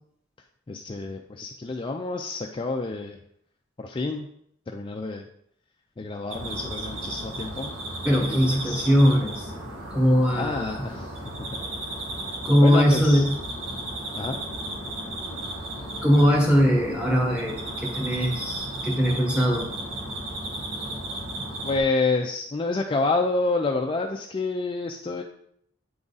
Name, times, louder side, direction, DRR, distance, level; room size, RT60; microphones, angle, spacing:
voice 1, 0.7-3.2 3.8-4.3 4.7-5.3 6.0-7.7 8.3-8.9 10.3-11.5 12.6-13.2 14.1-14.4 21.6-25.2, left 3 dB, 25° left, 2 dB, 0.4 m, -28 dB
sound 1, 6.3-21.8, right 1 dB, 80° right, 1.7 m, -34 dB
voice 2, 8.0-9.5 9.9-10.8 12.4-13.3 16.0-19.7, equal, 5° right, -1 dB, 1.3 m, -21 dB
8.6 x 3.6 x 4.0 m, 0.70 s
head